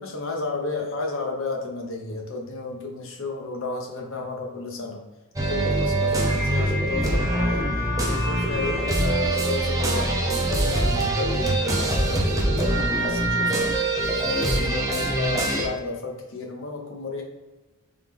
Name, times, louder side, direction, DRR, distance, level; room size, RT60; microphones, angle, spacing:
voice 1, 0.0-5.0 5.4-7.7 8.1-17.2, left 3 dB, 60° left, 1 dB, 0.8 m, -32 dB
sound 1, 5.4-15.7, right 1 dB, 15° right, 0.5 m, -23 dB
3.7 x 3.1 x 3.5 m, 1.1 s
head